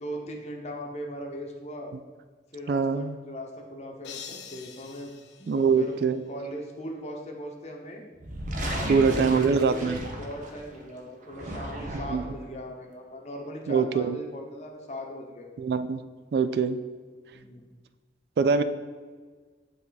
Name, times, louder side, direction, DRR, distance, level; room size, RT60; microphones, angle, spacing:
voice 1, 0.0-1.9 2.5-5.1 5.4-5.9 6.3-8.0 8.7-9.4 9.7-15.5 17.3-17.7, equal, 40° left, 1 dB, 0.9 m, -39 dB
voice 2, 2.7-3.1 5.5-6.2 8.9-10.0 12.1-12.2 13.7-14.2 15.6-16.0 16.3-16.8 18.4-18.6, right 5 dB, 60° right, 11 dB, 0.3 m, -23 dB
sound 1, 4.0-6.4, left 7 dB, 80° left, 0.6 m, -45 dB
sound 2, 8.2-10.7 11.2-12.4, right 1 dB, 45° right, 0.8 m, -34 dB
8.2 x 3.6 x 4.0 m, 1.5 s
head